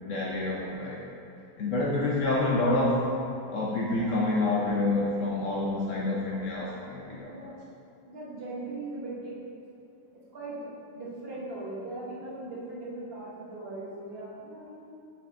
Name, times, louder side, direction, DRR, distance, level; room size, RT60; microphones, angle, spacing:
voice 1, 0.1-1.0 1.6-3.0 3.5-7.5, left 2 dB, 70° left, -4 dB, 0.7 m, -28 dB
voice 2, 8.1-9.4 10.1-14.9, right 2 dB, 40° right, -6 dB, 1.0 m, -39 dB
5.6 x 4.8 x 3.5 m, 2.5 s
omnidirectional pair, 2.0 m